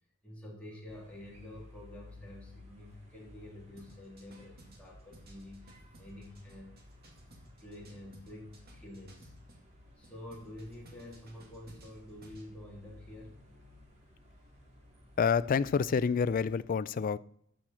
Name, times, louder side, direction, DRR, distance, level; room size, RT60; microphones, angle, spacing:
voice 1, 0.2-6.7 7.2-9.3 10.0-13.4, left 1 dB, 5° left, 3.2 m, -49 dB
sound 1, 0.9-16.6, left 1 dB, 35° right, 2.2 m, -57 dB
sound 2, 3.8-9.7 10.0-12.5, right 1 dB, 50° right, 2.1 m, -58 dB
voice 2, 15.2-17.2, left 6 dB, 40° left, 0.3 m, -28 dB
13.5 x 6.4 x 4.4 m
head